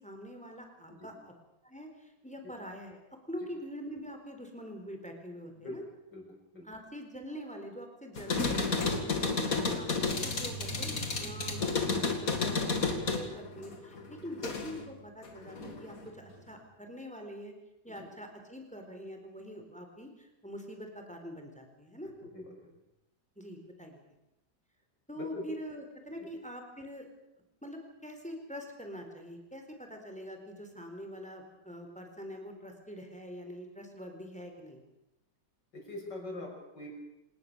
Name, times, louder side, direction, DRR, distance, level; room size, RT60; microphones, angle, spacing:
voice 1, 0.0-1.3 1.6-3.0 3.3-5.8 6.6-8.7 9.2-17.5 17.8-22.1 23.4-24.0 25.1-27.1 27.6-34.8, equal, 5° left, 4 dB, 4.0 m, -44 dB
sound 1, 8.2-14.9 15.2-16.1, left 4 dB, 55° left, 2.8 m, -32 dB
voice 2, 22.0-22.8 25.2-25.5 26.2-26.3 35.7-37.0, left 1 dB, 80° left, 0 dB, 7.4 m, -43 dB
27.5 x 18.5 x 7.0 m, 0.90 s
omnidirectional pair, 1.8 m